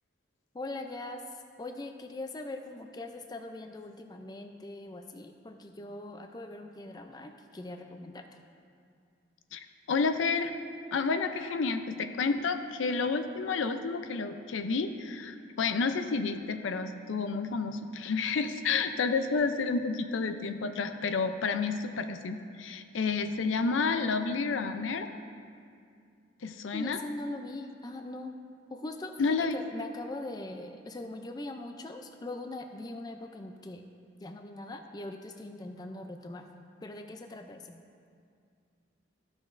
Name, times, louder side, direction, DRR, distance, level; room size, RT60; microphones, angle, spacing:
voice 1, 0.5-1.2 1.6-8.3 26.7-28.3 28.7-33.8 34.2-36.5 36.8-37.8, left 2 dB, 20° left, 5 dB, 0.3 m, -41 dB
voice 2, 9.5-10.5 10.9-25.1 26.4-27.0 29.2-29.6, left 4 dB, 80° left, 8 dB, 0.5 m, -30 dB
14.5 x 6.1 x 2.5 m, 2.3 s
head